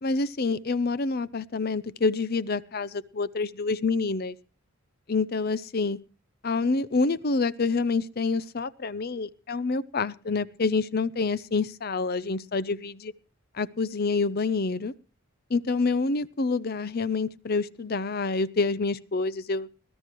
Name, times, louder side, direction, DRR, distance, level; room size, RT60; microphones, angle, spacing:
voice 1, 0.0-4.4 5.1-6.0 6.4-13.1 13.5-14.9 15.5-19.8, left 4 dB, 45° left, 17 dB, 0.6 m, -27 dB
20.5 x 12.5 x 3.0 m, 0.36 s
head